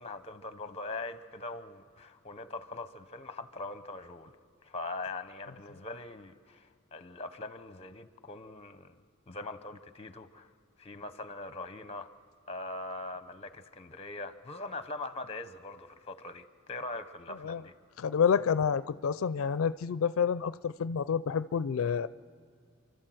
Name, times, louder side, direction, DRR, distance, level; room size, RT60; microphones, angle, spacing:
voice 1, 0.0-4.3 4.6-9.0 9.3-10.5 10.8-12.1 12.5-17.7, left 2 dB, 30° left, 0.8 m, -42 dB
voice 2, 18.0-22.1, left 7 dB, 90° left, 0.4 m, -28 dB
28.5 x 12.5 x 7.8 m
head